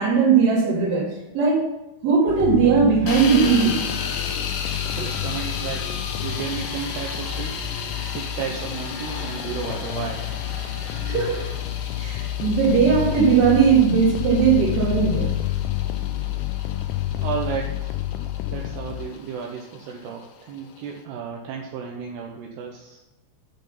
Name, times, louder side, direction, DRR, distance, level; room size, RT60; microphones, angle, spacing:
voice 1, 0.0-1.7 2.0-3.8 11.0-11.4 12.0-15.3, right 6 dB, 45° right, -3 dB, 3.7 m, -19 dB
sound 1, 2.3-19.1, left 14 dB, 85° left, 2.6 m, -29 dB
sound 2, 3.1-21.0, left 6 dB, 65° left, 2.1 m, -35 dB
sound 3, 4.6-12.5, left 3 dB, 5° right, 2.1 m, -40 dB
voice 2, 4.6-5.9 6.2-7.5 8.1-10.3 16.5-16.8 17.2-17.9 18.5-23.0, right 7 dB, 75° right, 0 dB, 2.9 m, -33 dB
10.5 x 7.2 x 5.7 m, 1.0 s
omnidirectional pair, 5.0 m